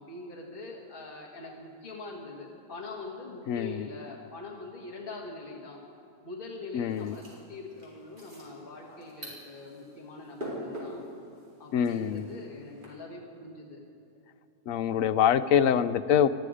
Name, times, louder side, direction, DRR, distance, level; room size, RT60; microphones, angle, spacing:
voice 1, 0.0-5.8 6.2-11.0 11.6-13.8 14.7-14.8, left 3 dB, 35° left, -2 dB, 1.9 m, -43 dB
voice 2, 3.5-3.9 6.7-7.2 11.7-12.3 14.7-16.3, left 9 dB, 70° left, 12 dB, 0.9 m, -25 dB
sound 1, 6.8-12.9, equal, 30° right, 4.4 m, -44 dB
20.0 x 14.0 x 4.9 m, 2.8 s
omnidirectional pair, 1.7 m